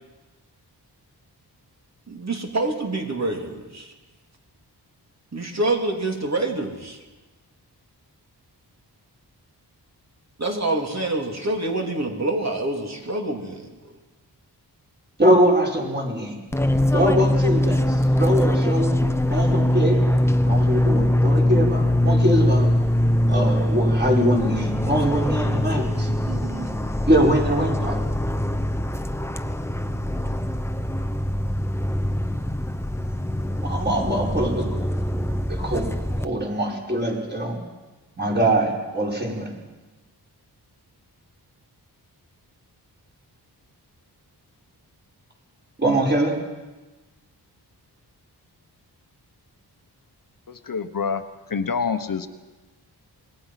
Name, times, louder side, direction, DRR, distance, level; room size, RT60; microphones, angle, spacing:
voice 1, 2.1-3.9 5.3-7.0 10.4-13.8 26.3-26.8, right 2 dB, 40° right, 2 dB, 3.5 m, -27 dB
voice 2, 15.2-16.4 16.9-19.0 19.3-20.1 20.4-22.7 23.3-26.1 27.1-28.0 33.6-34.7 35.5-35.9 36.2-37.5 38.2-39.5 45.8-46.3, right 1 dB, 25° right, -2 dB, 5.7 m, -22 dB
Fixed-wing aircraft airplane, 16.5-36.2, left 1 dB, 5° left, 1.1 m, -22 dB
voice 3, 50.5-51.2 51.5-52.3, left 5 dB, 55° left, 9 dB, 1.2 m, -26 dB
27.0 x 21.5 x 6.0 m, 1.2 s
wide cardioid pair, 105°, 40 cm